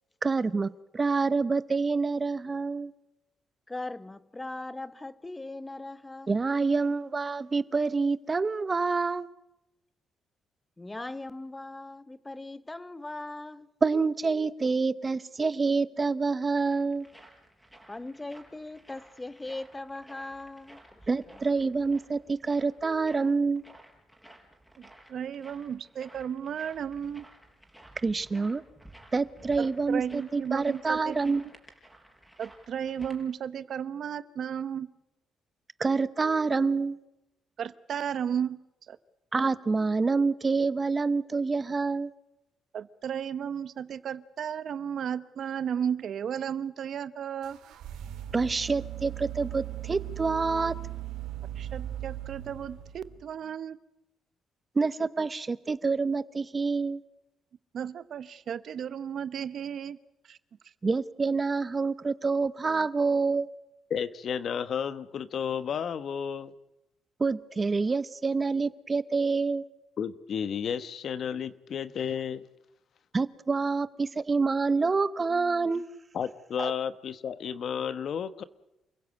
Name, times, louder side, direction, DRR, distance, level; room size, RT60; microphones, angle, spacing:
voice 1, 0.2-2.9 6.3-9.3 13.8-17.1 21.1-23.6 28.0-28.6 29.1-31.4 35.8-37.0 39.3-42.1 48.3-50.7 54.7-57.0 60.8-63.5 67.2-69.6 73.1-75.8 76.6-76.7, right 4 dB, 30° right, 0.9 m, -27 dB
voice 2, 3.7-6.4 10.8-13.7 17.9-20.8, left 2 dB, 15° left, 0.9 m, -39 dB
sound 1, 16.2-33.2, right 1 dB, ahead, 4.9 m, -55 dB
voice 3, 24.8-27.3 29.6-31.2 32.4-34.9 37.6-39.0 42.7-47.6 51.6-53.8 57.7-60.0 60.2-60.4, right 8 dB, 60° right, 0.9 m, -34 dB
sound 2, 47.4-53.3, right 13 dB, 85° right, 2.2 m, -38 dB
voice 4, 63.9-66.5 70.0-72.4 76.1-78.4, left 7 dB, 60° left, 1.1 m, -32 dB
28.5 x 16.0 x 8.4 m
cardioid pair, 90°, 0 cm